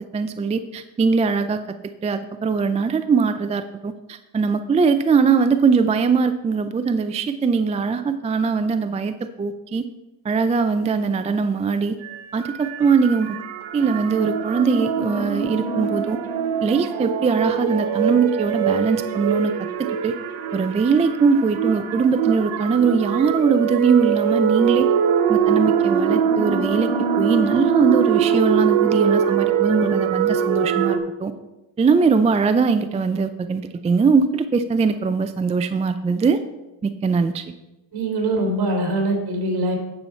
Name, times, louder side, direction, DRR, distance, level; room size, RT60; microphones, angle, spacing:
voice 1, 0.1-1.6 2.0-9.9 10.2-12.0 12.3-13.4 13.7-16.2 16.6-19.5 19.8-20.2 20.5-24.9 25.3-26.9 27.2-31.3 31.8-36.4 36.8-37.5, right 5 dB, 15° right, 10 dB, 0.3 m, -21 dB
sound 1, 12.0-31.0, right 7 dB, 80° right, 1.3 m, -22 dB
voice 2, 37.9-39.8, right 1 dB, 50° right, 0 dB, 3.7 m, -23 dB
9.6 x 7.0 x 4.4 m, 0.98 s
cardioid pair, 100°, 46 cm